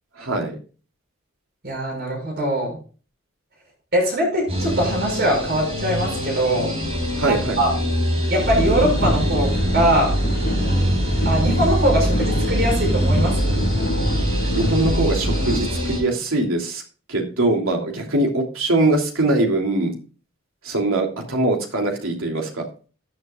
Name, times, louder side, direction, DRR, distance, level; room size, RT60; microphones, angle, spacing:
voice 1, 0.2-0.6 7.1-7.6 14.5-16.8 17.1-19.9 20.6-22.7, right 2 dB, 75° right, 1 dB, 3.0 m, -22 dB
voice 2, 1.6-2.8 3.9-6.7 7.2-7.7 8.3-10.1 11.2-13.6, right 1 dB, 45° right, 1 dB, 6.3 m, -22 dB
sound 1, 4.5-16.0, equal, 30° right, 4.8 m, -25 dB
sound 2, 8.4-15.6, equal, 50° left, 3.4 m, -23 dB
14.5 x 8.8 x 2.4 m, 0.36 s
head